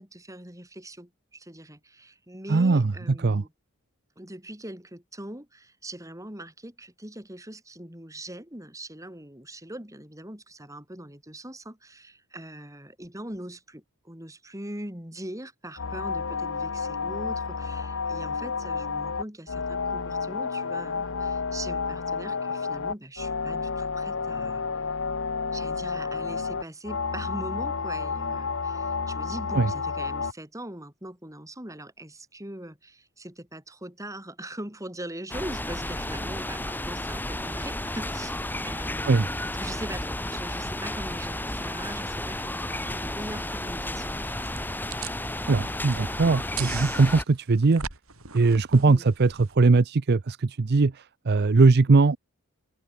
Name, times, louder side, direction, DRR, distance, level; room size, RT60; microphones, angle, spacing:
voice 1, 0.0-3.5 4.2-24.8 25.5-44.2 48.7-49.1, right 1 dB, 15° right, 4.8 m, -41 dB
voice 2, 2.5-2.8 3.2-3.4 29.5-29.7 39.1-39.3 45.5-47.8 48.3-50.9 51.3-52.2, right 3 dB, 50° right, 0.6 m, -20 dB
sound 1, 15.8-30.3, left 5 dB, 60° left, 0.9 m, -30 dB
sound 2, 35.3-47.2, left 1 dB, 10° left, 7.0 m, -32 dB
sound 3, 44.5-49.5, right 6 dB, 70° right, 4.9 m, -40 dB
head